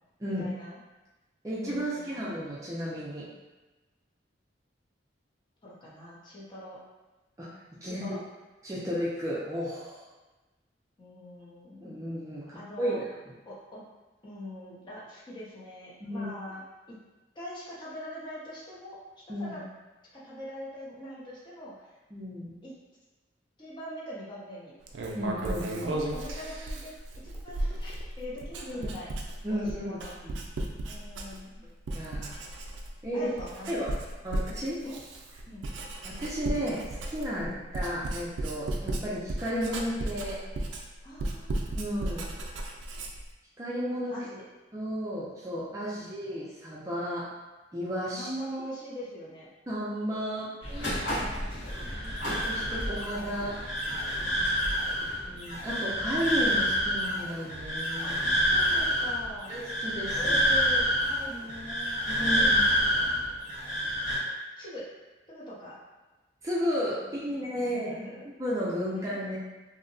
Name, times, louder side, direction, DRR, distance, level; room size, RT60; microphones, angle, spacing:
voice 1, 0.4-0.8 1.5-2.3 5.6-6.8 7.8-8.2 11.0-12.0 12.5-13.0 13.4-13.8 14.2-16.6 16.9-17.0 17.3-19.0 19.4-19.6 20.2-21.9 22.6-22.8 23.6-24.7 25.8-26.9 27.2-29.1 29.5-30.1 30.8-31.6 33.1-34.0 34.3-34.4 34.8-35.0 35.5-35.6 37.3-37.6 41.0-41.7 44.1-44.4 46.0-46.1 48.1-49.5 50.3-50.5 50.8-51.6 51.9-52.3 54.3-55.1 58.0-58.1 58.5-59.5 60.2-63.2 64.6-64.9 65.3-65.8 67.3-68.3 69.0-69.2, equal, 25° left, -8 dB, 0.7 m, -43 dB
voice 2, 1.4-3.3 7.4-7.5 7.8-8.2 8.6-10.1 11.8-13.0 16.0-16.3 19.3-19.6 22.1-22.6 25.1-25.9 28.6-28.9 29.4-30.0 30.2-30.4 31.9-32.4 33.0-33.3 33.7-33.9 34.2-34.8 36.0-40.4 41.7-42.3 43.6-44.2 44.7-47.3 47.7-48.3 49.7-51.0 52.2-53.6 55.3-58.2 59.5-60.2 62.1-62.7 66.4-67.9 68.4-69.4, equal, 15° right, -8 dB, 0.4 m, -33 dB
Writing, 24.9-31.6 31.9-33.0 33.4-43.3, right 1 dB, 85° right, 0.3 m, -35 dB
sound 1, 50.6-56.5, equal, 70° left, 1.0 m, -36 dB
sound 2, 51.6-64.2, equal, 45° left, 1.2 m, -28 dB
2.7 x 2.1 x 2.6 m, 1.1 s
head